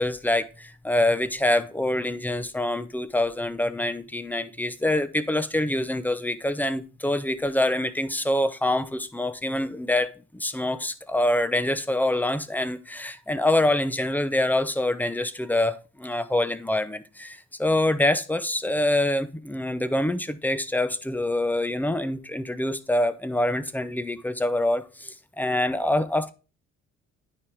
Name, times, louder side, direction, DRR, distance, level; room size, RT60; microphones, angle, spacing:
voice 1, 0.0-26.3, left 1 dB, 5° left, 0.7 m, -25 dB
9.7 x 5.0 x 3.5 m
cardioid pair, 90°, 30 cm